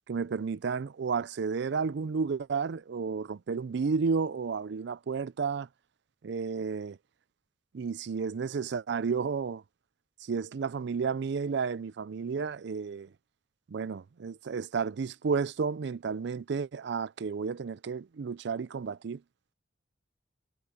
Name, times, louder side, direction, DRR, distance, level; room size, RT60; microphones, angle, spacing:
voice 1, 0.1-5.7 6.2-7.0 7.7-9.6 10.2-13.1 13.7-19.2, right 5 dB, 65° right, 0.4 m, -32 dB
head